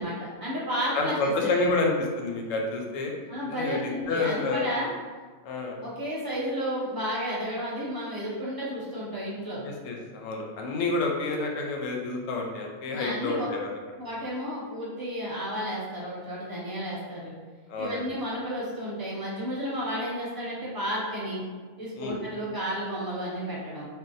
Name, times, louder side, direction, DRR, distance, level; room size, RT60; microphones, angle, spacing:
voice 1, 0.0-1.7 3.3-4.9 5.8-9.6 12.9-13.5 14.0-17.3 17.8-21.4 21.8-23.9, equal, 20° right, -8 dB, 0.8 m, -32 dB
voice 2, 0.9-3.1 3.6-4.7 5.4-5.8 9.6-13.8 17.7-18.0 22.0-22.2, left 3 dB, 90° left, 1 dB, 1.0 m, -29 dB
2.7 x 2.1 x 3.9 m, 1.4 s
omnidirectional pair, 1.3 m